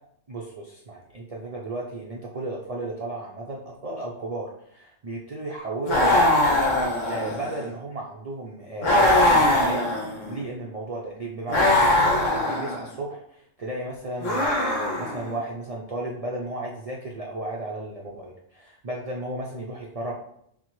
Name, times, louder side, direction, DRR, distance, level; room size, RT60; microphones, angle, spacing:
voice 1, 0.3-6.5 7.1-9.9 10.3-20.1, right 2 dB, 70° right, -2 dB, 0.3 m, -34 dB
sound 1, 5.9-7.6 8.8-10.4 11.5-12.8 14.2-15.3, left 1 dB, 75° left, 1.2 m, -21 dB
5.9 x 2.1 x 3.0 m, 0.71 s
omnidirectional pair, 1.3 m